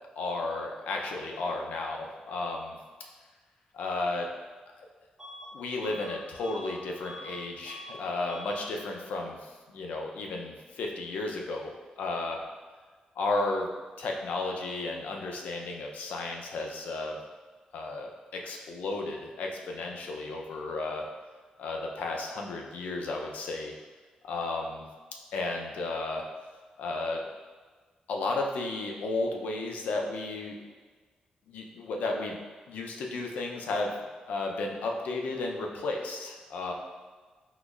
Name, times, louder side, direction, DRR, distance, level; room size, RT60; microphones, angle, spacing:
voice 1, 0.0-2.8 3.7-4.3 4.8-4.9 5.5-12.4 13.2-13.7 14.0-17.2 17.7-21.1 21.6-23.7 24.2-24.9 25.3-26.3 26.8-27.2 28.1-30.6 31.5-32.4 32.7-33.9 34.3-36.7, left 2 dB, 85° left, 1 dB, 0.4 m, -33 dB
Bus / Alarm, 5.2-5.5 5.8-7.4 7.6-8.0 8.3-8.6, left 1 dB, 20° right, 0.8 m, -45 dB
3.9 x 3.0 x 2.3 m, 1.4 s
cardioid pair, 110°, 3 cm